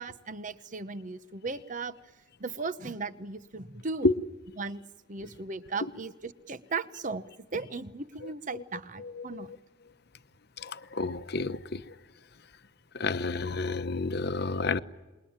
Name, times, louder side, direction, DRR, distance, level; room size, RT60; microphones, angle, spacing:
voice 1, 0.0-2.0 2.4-4.1 4.6-4.8 5.1-9.5, right 4 dB, 40° right, 1.0 m, -37 dB
voice 2, 9.0-9.5 10.6-11.9 12.9-14.8, left 3 dB, 55° left, 1.0 m, -30 dB
27.5 x 22.0 x 8.9 m
head